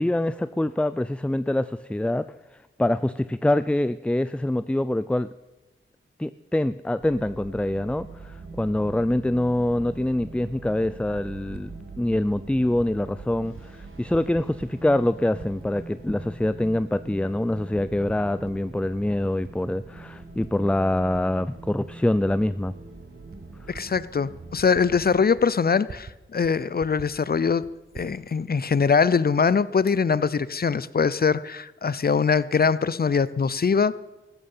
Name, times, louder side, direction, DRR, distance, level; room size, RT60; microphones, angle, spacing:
voice 1, 0.0-2.3 2.8-5.3 6.2-22.7, left 1 dB, 5° left, 14 dB, 0.4 m, -25 dB
sound 1, 7.0-25.2, right 3 dB, 75° right, 3.0 m, -43 dB
Typing, 10.8-11.7 12.3-12.9 13.2-13.7 13.9-15.0 15.3-16.5 17.1-17.2 17.7-18.6 18.9-21.2 21.6-26.2 26.4-26.5 26.8-28.1, right 4 dB, 50° right, 1.2 m, -46 dB
voice 2, 23.7-27.6 27.9-34.0, left 5 dB, 45° left, 18 dB, 0.6 m, -22 dB
14.5 x 13.0 x 5.6 m, 1.1 s
cardioid pair, 60°, 21 cm